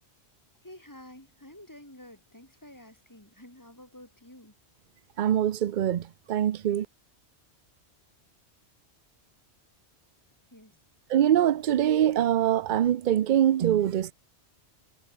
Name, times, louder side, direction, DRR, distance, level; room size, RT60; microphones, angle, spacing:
voice 1, 0.6-4.5 10.5-10.8, left 1 dB, 15° left, 5.6 m, -50 dB
voice 2, 5.2-6.9 11.1-14.1, right 11 dB, 50° right, 0.6 m, -24 dB
omnidirectional pair, 1.2 m